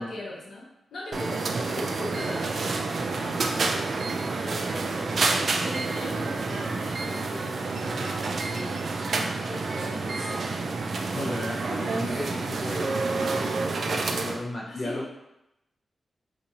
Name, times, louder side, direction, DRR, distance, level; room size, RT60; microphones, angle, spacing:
voice 1, 0.0-2.8 3.2-3.8 4.4-5.1 5.6-10.7 11.2-11.5 11.8-12.1 14.7-15.1, left 1 dB, 90° left, -5 dB, 0.8 m, -40 dB
sound 1, 1.1-14.4, right 3 dB, 55° right, 0.3 m, -29 dB
voice 2, 11.1-15.1, left 1 dB, 45° left, -4 dB, 0.6 m, -35 dB
2.8 x 2.5 x 4.0 m, 0.86 s
wide cardioid pair, 125°, 0 cm